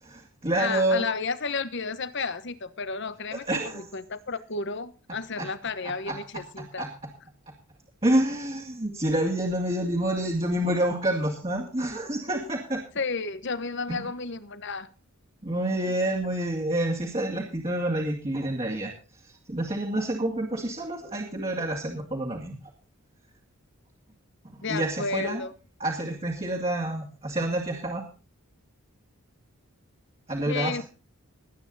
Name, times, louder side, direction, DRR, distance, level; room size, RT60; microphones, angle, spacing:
voice 1, 0.0-1.0 3.3-3.9 5.4-5.5 5.8-6.2 6.6-6.9 8.0-12.8 13.9-14.1 15.4-18.9 19.5-22.6 24.7-25.4 25.8-28.0 30.3-30.8, right 1 dB, 25° right, -1 dB, 2.3 m, -28 dB
voice 2, 0.6-6.8 12.9-14.9 24.6-25.5 30.4-30.8, left 4 dB, 55° left, 14 dB, 1.1 m, -32 dB
19.0 x 9.1 x 4.1 m, 0.35 s
head